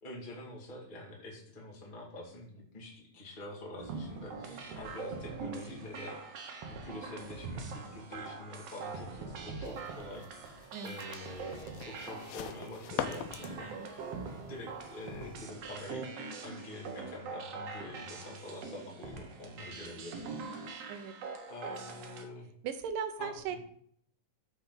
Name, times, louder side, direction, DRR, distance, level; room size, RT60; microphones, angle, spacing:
voice 1, 0.0-14.1 14.4-16.0 16.3-20.8 21.5-22.5 23.2-23.6, left 2 dB, 20° left, -3 dB, 1.6 m, -46 dB
sound 1, 3.8-22.2, right 4 dB, 65° right, 1.7 m, -43 dB
voice 2, 4.5-4.8 10.7-11.0 13.6-13.9 19.7-19.8 20.9-21.1 21.7-21.8 22.6-23.6, right 7 dB, 80° right, 9 dB, 2.4 m, -39 dB
sound 2, 9.6-15.5, left 10 dB, 90° left, 2.4 m, -44 dB
13.5 x 4.7 x 3.9 m, 0.65 s
omnidirectional pair, 3.9 m